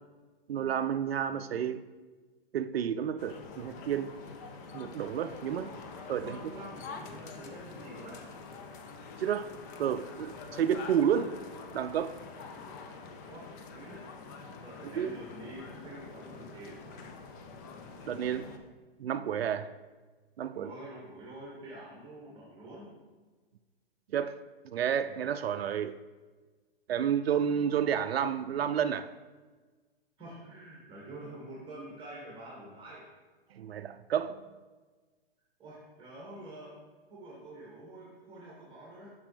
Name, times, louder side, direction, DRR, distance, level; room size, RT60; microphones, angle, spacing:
voice 1, 0.5-1.8 2.5-4.1 4.7-5.7 6.1-6.4 9.2-9.5 9.8-11.3 11.7-12.1 15.0-15.2 18.1-18.5 19.0-19.7 20.4-20.7 24.1-24.3 24.6-25.9 26.9-29.1 33.5-34.4, right 8 dB, 75° right, 0.5 m, -30 dB
sound 1, 3.2-18.6, left 4 dB, 20° left, 0.3 m, -46 dB
voice 2, 6.2-8.2 13.3-14.0 14.6-16.8 20.5-22.9 30.2-33.1 35.6-36.8 37.1-39.1, right 1 dB, 15° right, 1.7 m, -47 dB
7.1 x 6.0 x 3.3 m
hypercardioid pair, 125°, 31 cm